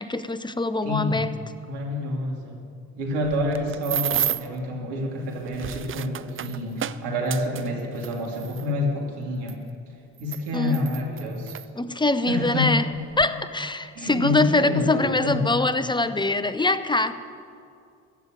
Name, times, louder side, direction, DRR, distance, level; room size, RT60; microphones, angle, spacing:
voice 1, 0.0-1.3 10.5-10.8 11.8-12.9 13.2-17.1, left 2 dB, 10° left, 12 dB, 0.8 m, -23 dB
voice 2, 0.8-1.3 1.7-2.6 3.0-9.6 10.2-11.6 12.3-12.8 13.9-15.5, left 1 dB, 75° right, 0 dB, 2.7 m, -28 dB
sound 1, 3.2-4.6 5.3-8.7 9.5-9.6 10.2-11.7 12.4-12.6 12.9-13.3, right 10 dB, 30° right, 0.5 m, -31 dB
14.5 x 7.3 x 9.3 m, 2.4 s
hypercardioid pair, 50°, 41 cm